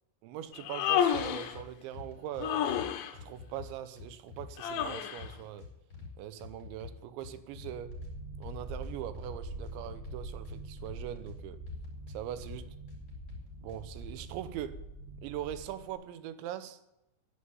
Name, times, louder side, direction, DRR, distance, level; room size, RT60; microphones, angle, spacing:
voice 1, 0.2-2.7 3.1-5.7 6.2-8.0 8.4-11.6 12.1-12.8 13.6-14.8 15.2-16.8, right 11 dB, 85° right, 3.2 m, -41 dB
Human voice, 0.5-1.6 2.4-3.1 4.6-5.3, left 9 dB, 85° left, 3.3 m, -30 dB
sound 1, 1.1-1.6 1.9-2.9 3.1-4.9 5.2-6.1 6.4-8.1 8.4-9.3 9.6-11.4 11.7-12.6 12.9-14.1, left 6 dB, 35° left, 5.5 m, -47 dB
sound 2, 7.5-15.9, right 2 dB, 60° right, 4.0 m, -44 dB
11.0 x 10.0 x 9.6 m
omnidirectional pair, 5.2 m